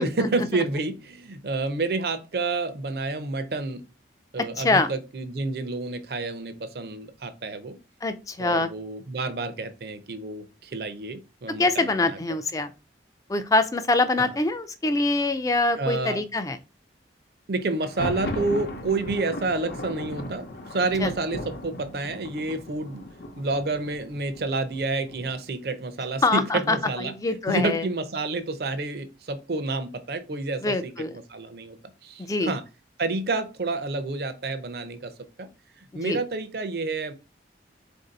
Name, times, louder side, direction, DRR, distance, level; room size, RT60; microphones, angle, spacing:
voice 1, 0.0-3.8 4.3-7.7 8.4-12.4 14.2-14.3 15.8-16.2 17.5-23.0 23.4-30.9 31.3-31.8 32.0-32.6 33.0-35.1 35.4-35.5 35.9-37.1, right 3 dB, 55° right, 0.5 m, -29 dB
voice 2, 4.6-4.9 8.0-8.7 11.6-12.7 13.3-16.6 21.0-21.1 26.2-27.8 30.6-31.2 32.2-32.5 36.0-36.2, left 2 dB, 20° left, 0.3 m, -24 dB
Thunder, 17.7-25.5, left 1 dB, 60° left, 0.7 m, -37 dB
4.0 x 2.6 x 3.9 m
head